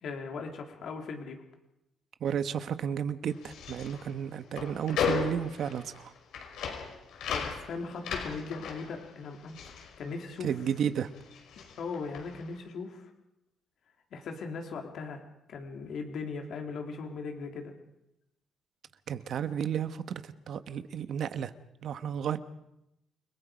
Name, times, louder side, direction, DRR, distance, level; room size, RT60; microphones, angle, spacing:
voice 1, 0.0-1.4 7.3-10.5 11.8-13.1 14.1-15.2 15.5-17.7, left 4 dB, 60° left, 3 dB, 3.4 m, -39 dB
voice 2, 2.2-6.1 10.4-11.1 19.1-21.5 21.8-22.4, right 8 dB, 55° right, 11 dB, 1.2 m, -32 dB
sound 1, 3.3-10.8 11.1-12.5, left 6 dB, 80° left, 5.2 m, -36 dB
29.5 x 21.5 x 5.2 m, 0.85 s
cardioid pair, 165°, 0 cm